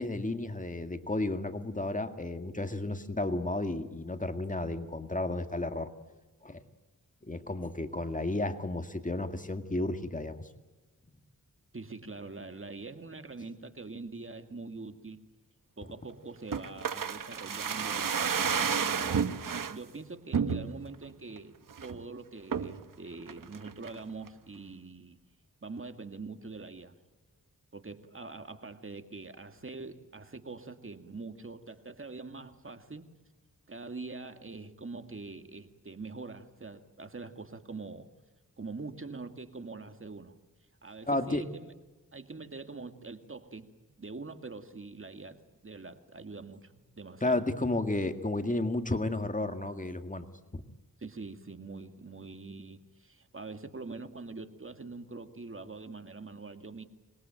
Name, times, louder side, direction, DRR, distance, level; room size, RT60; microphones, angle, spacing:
voice 1, 0.0-5.9 6.4-6.6 7.2-10.5 41.1-41.4 47.2-50.3 50.5-50.6, left 2 dB, 25° left, 7 dB, 2.0 m, -32 dB
voice 2, 11.7-15.2 15.8-19.4 19.7-21.5 21.8-25.2 25.6-27.0 27.7-33.1 33.7-38.1 38.6-40.4 40.8-41.7 42.1-43.7 44.0-47.4 51.0-56.8, right 3 dB, 40° right, 8 dB, 2.1 m, -44 dB
sound 1, 16.5-19.8 20.3-20.9 21.4-21.5 21.7-22.0 22.5-22.8 23.3-24.0 24.3-24.4, right 6 dB, 75° right, 1.4 m, -31 dB
26.0 x 21.5 x 9.0 m, 1.2 s
wide cardioid pair, 75°, 33 cm